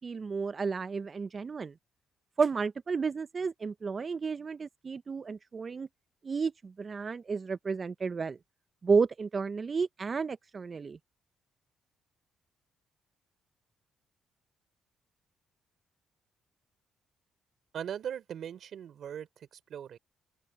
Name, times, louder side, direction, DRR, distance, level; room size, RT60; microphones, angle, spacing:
voice 1, 0.0-1.7 2.4-5.9 6.2-8.4 8.8-11.0, right 5 dB, 35° right, 0.4 m, -32 dB
voice 2, 17.7-20.0, right 9 dB, 65° right, 3.4 m, -40 dB
open air
cardioid pair, 90°, 0 cm